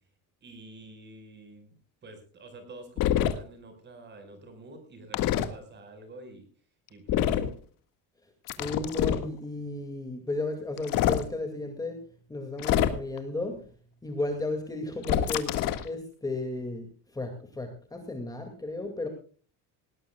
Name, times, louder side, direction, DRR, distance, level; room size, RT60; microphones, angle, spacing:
voice 1, 0.4-1.8 2.0-6.5 6.9-7.4, right 2 dB, 25° right, 7 dB, 4.9 m, -48 dB
sound 1, 3.0-3.3 5.1-5.5 7.1-7.5 8.5-9.3 10.8-11.2 12.6-13.2 15.0-15.9, left 11 dB, 55° left, 1.8 m, -26 dB
voice 2, 8.6-12.0 12.3-13.6 14.0-15.6 15.8-19.1, left 2 dB, 10° left, 4 dB, 2.2 m, -34 dB
19.5 x 18.5 x 2.3 m, 0.40 s
cardioid pair, 180°, 39 cm